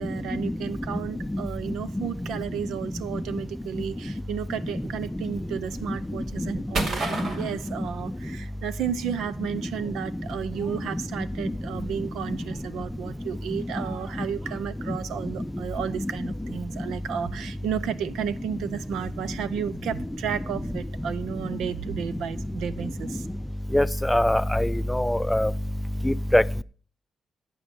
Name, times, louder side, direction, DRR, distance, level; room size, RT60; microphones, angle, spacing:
voice 1, 0.0-23.3, right 8 dB, 85° right, 0.6 m, -32 dB
sound 1, 4.7-8.6 8.8-14.6, right 2 dB, 70° right, 2.5 m, -37 dB
voice 2, 23.7-25.5 26.0-26.4, left 1 dB, 5° left, 0.4 m, -22 dB
11.0 x 8.6 x 5.3 m
cardioid pair, 75°, 0 cm